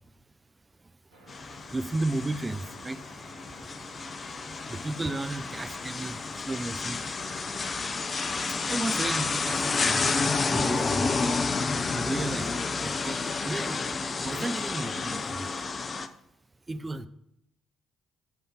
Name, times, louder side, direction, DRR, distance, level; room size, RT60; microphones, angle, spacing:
sound 1, 1.1-15.8, right 1 dB, 80° right, 2.2 m, -53 dB
sound 2, 1.3-16.1, left 4 dB, 40° left, 0.6 m, -30 dB
voice 1, 1.7-3.0 4.7-6.2 6.5-7.0 8.6-10.0 10.5-11.1 11.9-12.5 12.8-13.8 14.2-15.4 16.7-17.1, right 2 dB, 25° right, 11 dB, 0.6 m, -33 dB
9.4 x 3.6 x 5.9 m, 0.81 s
hypercardioid pair, 50°, 0 cm